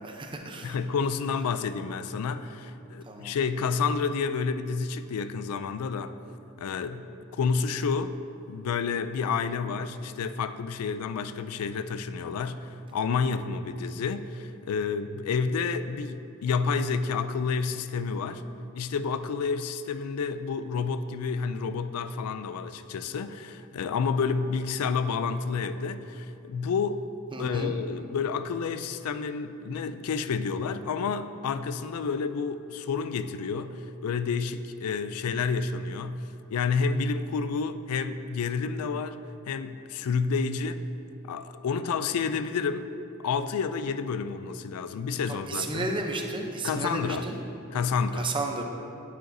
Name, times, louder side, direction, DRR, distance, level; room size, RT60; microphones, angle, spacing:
voice 1, 0.0-0.8 3.1-3.4 27.3-27.8 45.3-47.4 48.2-48.6, right 2 dB, 25° right, 2 dB, 0.6 m, -33 dB
voice 2, 0.6-6.2 6.6-7.1 7.4-8.2 8.5-18.4 18.7-27.0 27.4-36.2 36.5-39.2 39.5-40.8 41.2-42.9 43.2-45.9 46.6-47.3 47.7-48.3, left 5 dB, 90° left, 11 dB, 0.4 m, -29 dB
9.3 x 8.1 x 2.7 m, 2.7 s
head